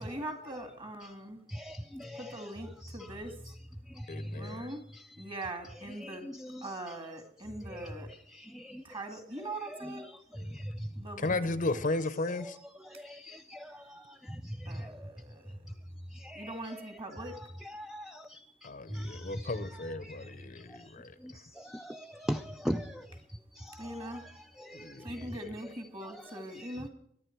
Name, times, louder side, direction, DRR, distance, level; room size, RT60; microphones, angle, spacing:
voice 1, 0.0-1.4 2.1-3.4 4.3-4.8 5.2-6.3 6.6-8.1 8.8-10.1 11.0-11.3 14.7-15.6 16.3-17.4 23.8-24.2 25.0-26.9, right 1 dB, 30° right, 2.2 m, -41 dB
voice 2, 1.5-2.5 2.8-3.1 3.9-5.1 5.8-7.0 7.6-8.8 9.4-10.9 12.4-15.1 16.1-25.3 26.0-26.8, equal, ahead, 0.4 m, -42 dB
voice 3, 4.1-4.7 10.4-10.6 11.2-12.6 18.6-21.1 24.7-25.5, left 2 dB, 45° left, 0.8 m, -35 dB
22.5 x 10.0 x 4.6 m
head